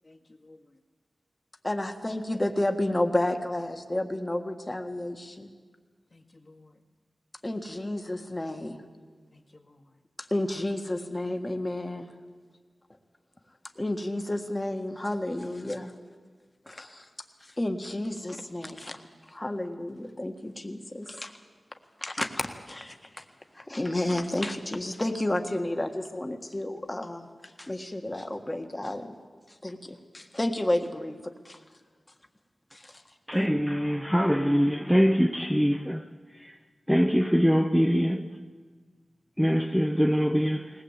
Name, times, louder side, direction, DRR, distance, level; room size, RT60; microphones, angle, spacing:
voice 1, 0.0-0.8 6.1-6.8 9.3-10.0, left 2 dB, 40° left, 1.9 m, -56 dB
voice 2, 1.6-5.5 7.4-8.8 10.2-12.1 13.7-15.9 16.7-17.1 17.6-19.0 19.3-21.3 22.0-23.2 23.5-27.3 27.6-29.1 29.6-31.2 31.4-31.6 32.7-33.0, left 1 dB, 20° left, 1.6 m, -31 dB
voice 3, 33.3-36.0 36.9-38.3 39.4-40.7, equal, ahead, 0.7 m, -23 dB
20.0 x 19.5 x 8.2 m
wide cardioid pair, 105°, 0 cm